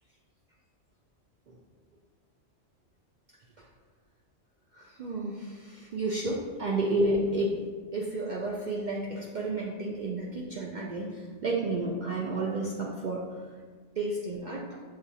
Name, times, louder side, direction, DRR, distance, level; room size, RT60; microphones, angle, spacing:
voice 1, 4.7-7.6 7.9-13.4 14.0-14.8, right 2 dB, 65° right, -3 dB, 0.4 m, -31 dB
6.5 x 2.4 x 2.7 m, 1.5 s
omnidirectional pair, 1.3 m